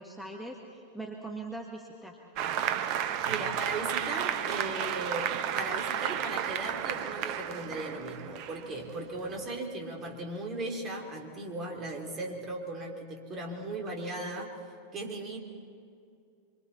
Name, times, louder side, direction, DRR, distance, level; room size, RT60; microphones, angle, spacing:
voice 1, 0.0-2.2, right 2 dB, ahead, 0 dB, 1.7 m, -41 dB
Applause, 2.4-9.6, right 9 dB, 45° right, 1.0 m, -33 dB
voice 2, 3.3-14.5 14.9-15.4, right 2 dB, 30° right, 1 dB, 3.6 m, -37 dB
26.5 x 24.0 x 4.3 m, 2.3 s
figure-of-eight pair, 90°, 0 cm